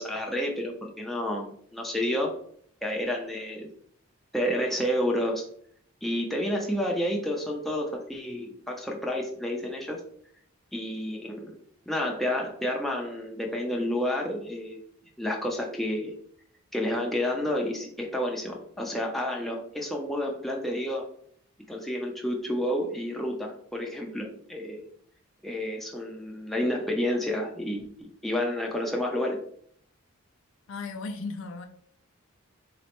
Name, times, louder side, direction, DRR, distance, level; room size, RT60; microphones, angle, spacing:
voice 1, 0.0-2.3 2.8-3.7 4.3-5.4 6.0-10.0 10.7-11.5 11.9-14.8 15.2-16.1 16.7-21.0 21.7-24.8 25.4-29.4, left 1 dB, ahead, 0.5 m, -30 dB
voice 2, 30.7-31.7, left 3 dB, 60° left, 0.4 m, -35 dB
4.0 x 3.1 x 3.0 m
head